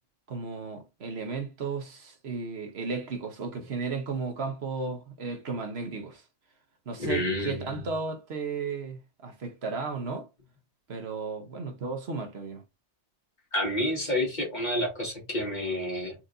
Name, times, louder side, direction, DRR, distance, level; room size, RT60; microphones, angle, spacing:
voice 1, 0.3-6.2 6.9-10.3 10.9-12.6, right 4 dB, 65° right, 1.2 m, -34 dB
voice 2, 7.0-7.7 13.5-16.2, left 1 dB, 40° left, 2.2 m, -29 dB
4.5 x 4.0 x 2.6 m
omnidirectional pair, 1.2 m